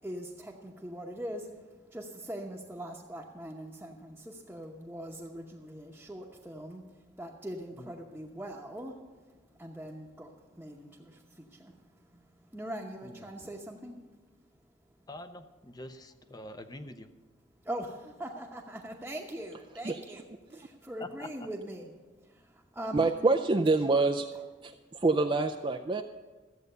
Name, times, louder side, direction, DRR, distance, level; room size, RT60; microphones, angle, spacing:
voice 1, 0.0-9.0 9.5-11.8 12.1-14.0 17.6-21.9 22.3-23.1 24.0-24.1, right 1 dB, 10° right, -3 dB, 0.9 m, -42 dB
voice 2, 15.1-17.1 21.0-21.3, left 1 dB, 20° left, 10 dB, 0.7 m, -45 dB
voice 3, 22.9-24.3 24.6-26.0, right 3 dB, 25° right, 5 dB, 0.4 m, -26 dB
14.5 x 8.1 x 6.7 m, 1.3 s
head